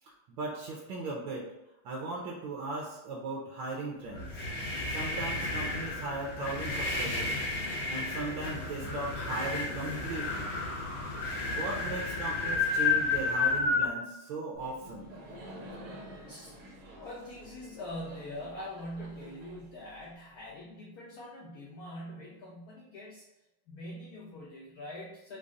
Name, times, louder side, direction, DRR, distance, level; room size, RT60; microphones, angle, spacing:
voice 1, 0.0-1.5 1.8-10.6 11.5-15.1, right 3 dB, 75° right, -3 dB, 1.3 m, -38 dB
sound 1, 4.1-13.9, left 3 dB, 55° left, 1.1 m, -32 dB
Laughter, 14.5-20.4, right 1 dB, 60° right, 0.8 m, -49 dB
voice 2, 16.0-23.3 23.7-25.4, left 1 dB, 85° left, -3 dB, 0.8 m, -44 dB
4.0 x 2.0 x 3.6 m, 0.96 s
omnidirectional pair, 2.2 m